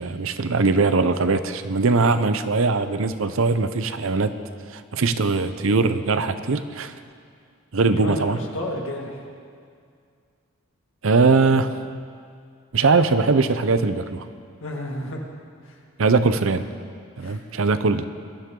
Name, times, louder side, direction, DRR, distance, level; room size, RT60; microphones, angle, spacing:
voice 1, 0.0-4.4 4.7-6.9 7.7-8.4 11.0-11.8 12.7-14.3 16.0-16.7 17.2-18.0, right 4 dB, 70° right, 11 dB, 0.6 m, -21 dB
voice 2, 7.9-9.2 14.6-15.2 15.6-15.7 17.2-17.4, left 1 dB, 65° left, 0 dB, 2.1 m, -31 dB
21.5 x 12.0 x 3.8 m, 2.2 s
head